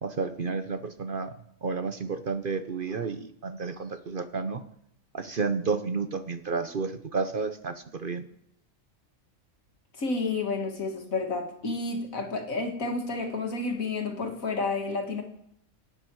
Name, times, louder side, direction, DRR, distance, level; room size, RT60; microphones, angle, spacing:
voice 1, 0.0-1.3 1.6-4.6 5.1-8.2, right 4 dB, 45° right, 10 dB, 0.8 m, -31 dB
voice 2, 10.0-15.2, left 3 dB, 75° left, 4 dB, 2.4 m, -30 dB
25.5 x 9.0 x 4.7 m, 0.76 s
omnidirectional pair, 1.4 m